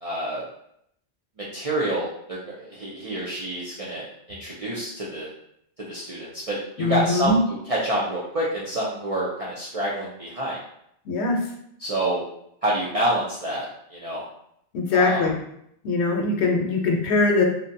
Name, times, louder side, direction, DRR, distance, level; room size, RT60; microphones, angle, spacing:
voice 1, 0.0-0.4 1.5-5.3 5.9-7.4 7.7-10.6 11.8-12.2 12.6-13.7 13.9-14.2 14.9-15.3, right 1 dB, 55° right, -6 dB, 0.4 m, -27 dB
voice 2, 6.8-7.4 11.1-11.4 14.7-15.3 15.8-17.5, left 3 dB, 75° left, 1 dB, 0.8 m, -21 dB
2.6 x 2.1 x 2.6 m, 0.73 s
omnidirectional pair, 1.1 m